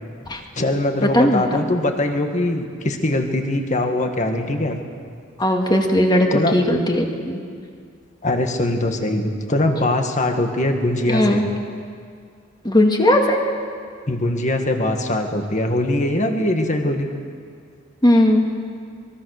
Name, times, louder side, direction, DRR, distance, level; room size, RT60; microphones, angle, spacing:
voice 1, 0.5-4.8 6.3-6.5 8.2-11.4 14.1-17.1, left 1 dB, 35° left, 5 dB, 1.9 m, -22 dB
voice 2, 5.4-7.4 11.1-11.5 12.6-13.5 18.0-18.4, left 1 dB, 20° left, 2 dB, 2.1 m, -17 dB
24.0 x 22.0 x 6.7 m, 2.2 s
head